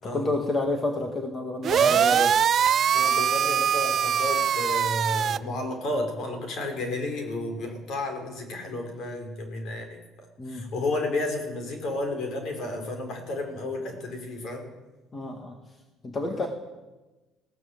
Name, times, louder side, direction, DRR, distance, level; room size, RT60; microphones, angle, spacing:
voice 1, 0.1-2.4 10.4-10.7 15.1-15.6 16.0-16.5, left 2 dB, 20° left, 4 dB, 1.9 m, -29 dB
sound 1, 1.6-5.4, right 8 dB, 35° right, 0.6 m, -22 dB
voice 2, 2.9-10.0 10.5-14.7 16.3-16.5, left 2 dB, 50° left, 4 dB, 5.0 m, -32 dB
20.0 x 17.0 x 8.0 m, 1.1 s
cardioid pair, 165°, 0 cm